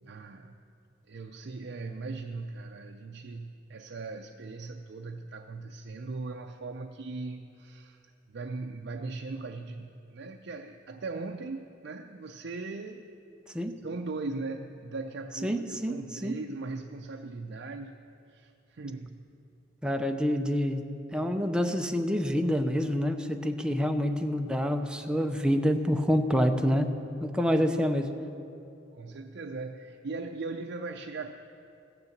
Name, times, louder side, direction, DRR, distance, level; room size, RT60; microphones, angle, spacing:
voice 1, 0.0-0.6 1.1-8.0 8.3-13.1 13.8-18.0 18.3-19.3 28.9-31.3, right 3 dB, 65° right, 4 dB, 0.5 m, -39 dB
voice 2, 15.4-16.4 19.8-20.9 21.1-26.9 27.2-28.1, equal, 5° right, 5 dB, 0.6 m, -27 dB
15.5 x 6.8 x 7.2 m, 2.6 s
head